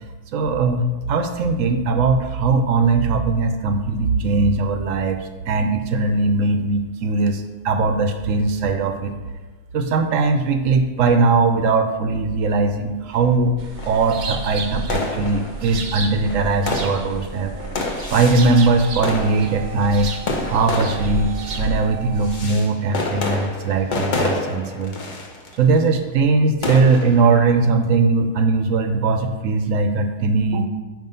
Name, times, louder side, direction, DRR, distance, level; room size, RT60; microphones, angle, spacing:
voice 1, 0.3-9.1 9.7-13.6 13.9-17.5 18.1-20.1 20.5-25.0 25.6-30.7, right 3 dB, 65° right, 7 dB, 0.9 m, -20 dB
sound 1, 13.1-13.2 13.8-14.2 14.9-15.8 16.3-18.6 19.0-25.8 26.6-27.5, left 2 dB, 40° left, 0.7 m, -28 dB
sound 2, 13.6-22.5, right 3 dB, 90° right, 0.4 m, -31 dB
sound 3, 17.5-22.6, right 9 dB, 15° right, 0.5 m, -39 dB
5.9 x 4.9 x 5.3 m, 1.2 s
omnidirectional pair, 1.7 m